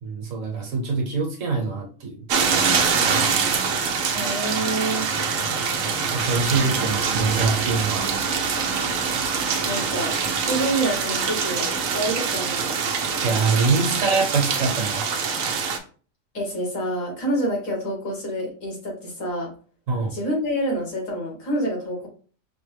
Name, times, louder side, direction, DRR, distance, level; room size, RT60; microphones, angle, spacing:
voice 1, 0.0-2.3 6.1-8.1 13.2-15.1 19.9-20.1, right 4 dB, 75° right, 1 dB, 1.3 m, -24 dB
sound 1, 2.3-15.8, right 5 dB, 90° right, 1.0 m, -24 dB
voice 2, 4.1-5.1 9.6-12.8 16.3-19.5 20.1-22.1, right 1 dB, 80° left, -1 dB, 1.9 m, -27 dB
5.2 x 2.1 x 3.2 m, 0.40 s
omnidirectional pair, 1.4 m